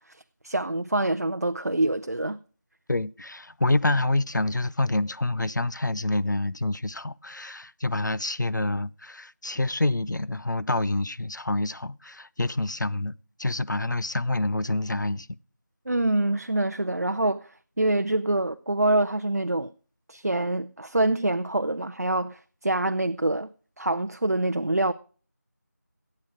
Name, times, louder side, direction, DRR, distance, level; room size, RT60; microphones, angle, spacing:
voice 1, 0.1-2.4 15.9-19.7 20.1-23.5 23.8-24.9, right 2 dB, 55° right, 0.7 m, -25 dB
voice 2, 2.9-15.3, left 2 dB, 80° left, 0.8 m, -27 dB
16.5 x 8.7 x 4.9 m
figure-of-eight pair, 175°, 10 cm